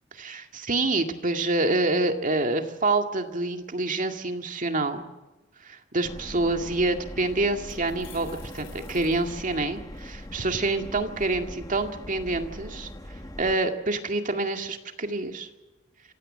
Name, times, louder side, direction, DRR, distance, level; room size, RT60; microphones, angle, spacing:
voice 1, 0.1-5.0 5.6-8.3 8.5-12.9 13.4-15.5, right 2 dB, 40° right, 5 dB, 2.1 m, -27 dB
Subway metro underground, 6.0-13.5, left 1 dB, 20° left, 1.2 m, -41 dB
sound 1, 7.5-10.0, left 7 dB, 65° left, 7.4 m, -51 dB
25.5 x 16.5 x 7.5 m, 1.1 s
head